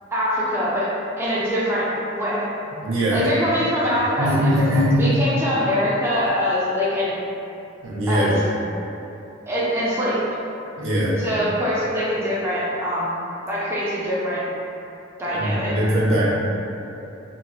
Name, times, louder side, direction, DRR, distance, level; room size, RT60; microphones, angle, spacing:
voice 1, 0.1-2.5 3.1-7.2 8.1-8.3 9.5-10.2 11.2-14.4 15.2-15.8, equal, 15° right, -8 dB, 0.4 m, -23 dB
voice 2, 2.8-3.3 4.2-5.2 7.8-8.4 10.8-11.2 15.3-16.3, equal, 85° right, -6 dB, 0.7 m, -21 dB
3.0 x 2.9 x 2.2 m, 2.8 s
head